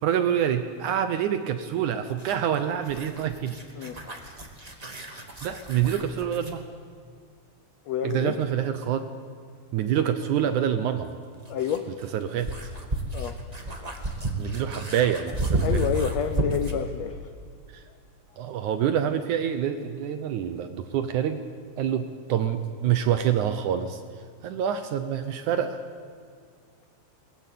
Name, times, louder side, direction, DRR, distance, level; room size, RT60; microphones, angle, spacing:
voice 1, 0.0-3.6 5.1-6.6 8.0-9.1 9.7-11.1 12.1-12.7 14.4-15.8 17.7-17.8 18.4-21.4 21.8-24.0 24.4-25.8, right 9 dB, 70° right, 9 dB, 1.9 m, -26 dB
sound 1, 2.1-6.6 9.0-9.1 11.0-16.9, right 2 dB, 35° right, 0.6 m, -32 dB
voice 2, 7.9-8.3 11.5-11.9 13.1-13.4 15.6-17.2, left 8 dB, 80° left, 8 dB, 1.5 m, -28 dB
21.5 x 19.0 x 8.5 m, 2.1 s
omnidirectional pair, 4.3 m